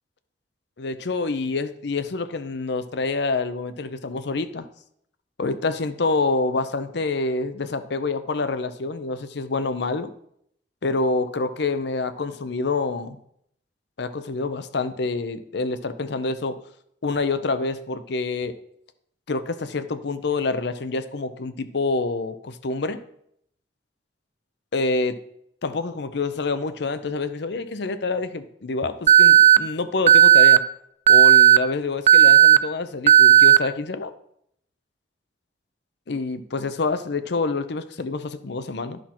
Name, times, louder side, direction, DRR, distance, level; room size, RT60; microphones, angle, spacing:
voice 1, 0.8-4.7 5.4-10.1 10.8-13.2 14.0-16.6 17.0-18.5 19.3-23.0 24.7-25.2 25.6-30.6 31.1-34.1 36.1-39.0, left 3 dB, 70° left, 11 dB, 0.6 m, -27 dB
Alarm, 29.1-29.6 30.1-30.6 31.1-31.6 32.1-32.6 33.1-33.6, right 9 dB, 40° right, 0.3 m, -12 dB
10.5 x 5.9 x 4.4 m, 0.71 s
head